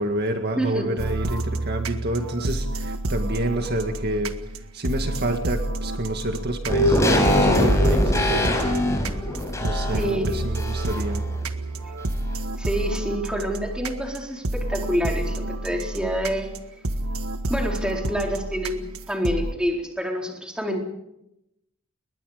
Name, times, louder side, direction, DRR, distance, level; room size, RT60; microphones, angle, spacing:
voice 1, 0.0-4.4 4.7-8.7 9.6-11.3, right 1 dB, 45° right, 5 dB, 2.0 m, -28 dB
voice 2, 0.5-1.0 9.9-10.3 12.6-16.5 17.5-20.8, equal, 5° right, 1 dB, 4.2 m, -27 dB
sound 1, 1.0-19.5, right 1 dB, 75° right, 1.7 m, -29 dB
sound 2, 6.7-11.2 11.5-11.6, left 1 dB, 15° left, 5.3 m, -22 dB
30.0 x 22.0 x 5.1 m, 0.84 s
head